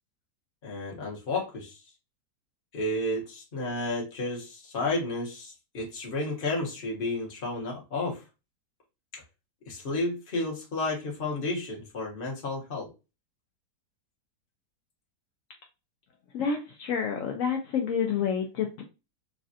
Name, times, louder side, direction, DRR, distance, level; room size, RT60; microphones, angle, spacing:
voice 1, 0.6-1.8 2.7-8.2 9.1-9.2 9.7-12.9, left 2 dB, 40° left, -1 dB, 1.0 m, -32 dB
voice 2, 16.3-18.8, left 7 dB, 75° left, 2 dB, 0.7 m, -29 dB
3.2 x 2.4 x 2.5 m, 0.28 s
omnidirectional pair, 1.8 m